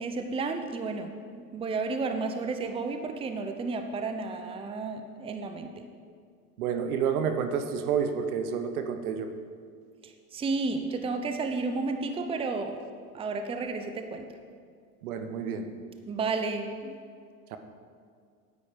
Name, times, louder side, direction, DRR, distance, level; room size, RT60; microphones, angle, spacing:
voice 1, 0.0-5.8 10.0-12.8 13.1-14.3 16.0-16.9, right 3 dB, 15° right, 6 dB, 0.6 m, -32 dB
voice 2, 6.6-9.3 15.0-15.7 17.5-17.6, right 7 dB, 75° right, 8 dB, 1.1 m, -29 dB
9.9 x 9.0 x 5.1 m, 2.1 s
hypercardioid pair, 110°, 44 cm